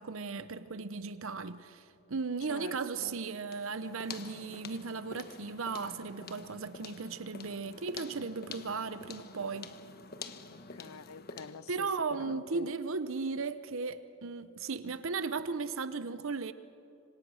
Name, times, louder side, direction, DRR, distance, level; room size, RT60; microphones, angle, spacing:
voice 1, 0.0-9.7 11.7-16.5, right 4 dB, 65° right, 0.8 m, -36 dB
voice 2, 2.5-3.2 10.5-11.9 12.2-12.7, left 6 dB, 80° left, 0.5 m, -47 dB
sound 1, 3.5-11.7, left 4 dB, 45° left, 1.2 m, -47 dB
27.0 x 25.5 x 6.4 m
head